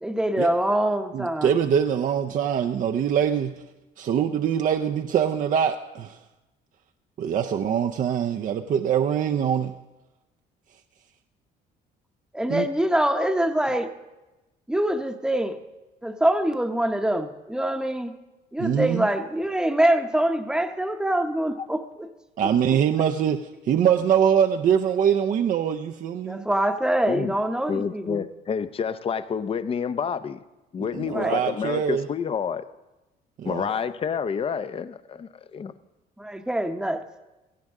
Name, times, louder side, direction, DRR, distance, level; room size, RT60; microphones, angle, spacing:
voice 1, 0.0-1.5 12.3-13.9 14.7-15.6 16.0-18.2 18.5-22.1 26.2-28.2 31.1-31.4 36.2-37.0, right 1 dB, 5° right, 7 dB, 0.9 m, -24 dB
voice 2, 1.1-3.6 4.0-6.2 7.2-9.7 12.5-12.7 18.6-19.1 22.4-26.5 30.9-32.1 33.4-33.7, right 8 dB, 50° right, 5 dB, 0.6 m, -23 dB
voice 3, 27.7-30.4 30.7-32.6 33.4-35.7, left 6 dB, 35° left, 13 dB, 0.6 m, -29 dB
17.0 x 14.5 x 3.6 m, 1.1 s
cardioid pair, 110°, 17 cm